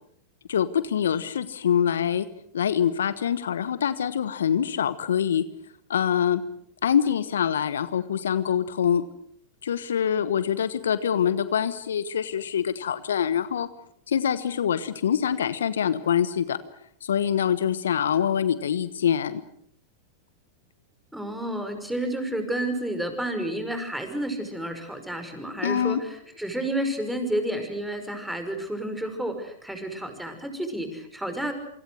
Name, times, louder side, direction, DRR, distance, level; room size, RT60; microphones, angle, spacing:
voice 1, 0.5-2.3 2.5-5.4 5.9-6.4 6.8-9.0 9.6-13.7 14.1-16.6 17.0-19.4 25.6-26.0, left 8 dB, 75° left, 15 dB, 1.2 m, -25 dB
voice 2, 21.1-31.5, right 1 dB, 5° right, 7 dB, 5.8 m, -30 dB
27.0 x 25.0 x 6.5 m, 0.66 s
figure-of-eight pair, 95°, 0 cm